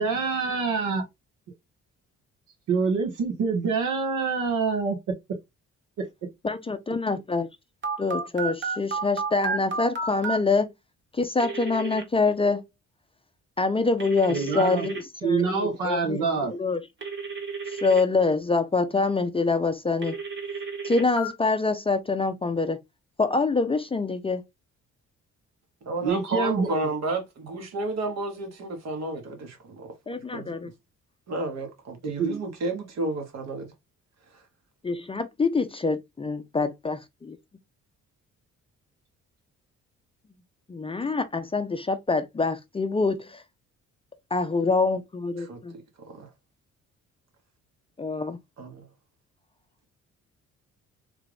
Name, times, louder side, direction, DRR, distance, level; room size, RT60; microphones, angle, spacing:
voice 1, 0.0-1.0 2.7-5.0 6.0-6.1 14.3-14.9 15.2-16.6 26.0-26.9 32.0-32.4, right 4 dB, 85° right, 1.4 m, -26 dB
voice 2, 6.4-7.5 8.0-10.7 11.1-12.6 13.6-16.2 16.5-16.8 17.7-20.2 20.8-22.8 23.2-24.4 30.1-30.7 34.8-37.4 40.7-43.4 44.3-45.7 48.0-48.4, left 3 dB, 20° left, 0.4 m, -25 dB
Telephone, 7.8-10.4 11.4-12.0 14.0-15.0 17.0-18.0 20.0-21.3, right 4 dB, 40° right, 1.3 m, -31 dB
voice 3, 25.8-29.9 30.3-30.5 31.3-33.7 34.3-34.4 45.4-46.3 48.6-48.9, right 2 dB, 60° right, 1.3 m, -32 dB
3.3 x 2.4 x 3.3 m
cardioid pair, 90°, 30 cm